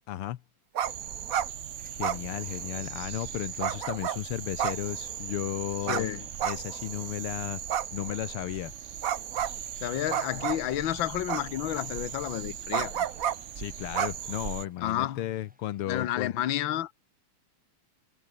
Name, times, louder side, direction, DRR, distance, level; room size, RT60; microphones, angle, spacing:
voice 1, 0.1-0.4 1.9-6.1 6.4-7.6 7.9-8.7 13.6-16.3, left 13 dB, 80° left, 1.8 m, -34 dB
sound 1, 0.7-0.9 1.2-1.5 2.0-2.8 3.6-4.2 4.6-5.3 5.9-6.0 6.4-7.0 7.7-8.4 9.0-9.5 10.1-10.7 11.3-11.9 12.7-13.3 13.9-14.7, right 9 dB, 55° right, 1.1 m, -30 dB
sound 2, 0.8-14.7, right 9 dB, 70° right, 0.6 m, -40 dB
sound 3, 1.7-15.8, equal, 5° right, 6.3 m, -63 dB
voice 2, 5.9-6.3 9.8-13.1 14.8-15.3 15.9-16.9, left 12 dB, 65° left, 1.8 m, -31 dB
omnidirectional pair, 2.4 m